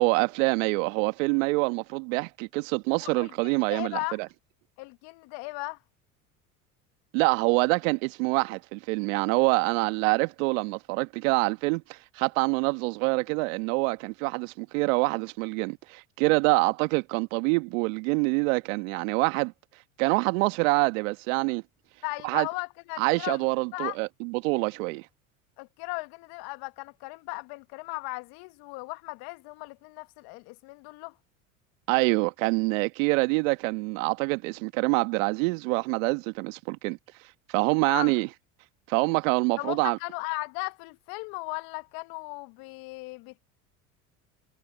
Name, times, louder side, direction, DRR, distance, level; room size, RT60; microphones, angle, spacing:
voice 1, 0.0-4.3 7.1-19.5 20.0-21.6 22.2-22.5 23.0-25.0 31.9-37.0 37.5-38.3 38.9-40.0, right 28 dB, 70° right, 1.6 m, -26 dB
voice 2, 3.0-4.2 4.8-5.8 22.0-23.4 23.7-24.0 25.6-31.2 37.9-38.1 39.6-43.4, left 27 dB, 60° left, 1.6 m, -37 dB
hypercardioid pair, 75°, 41 cm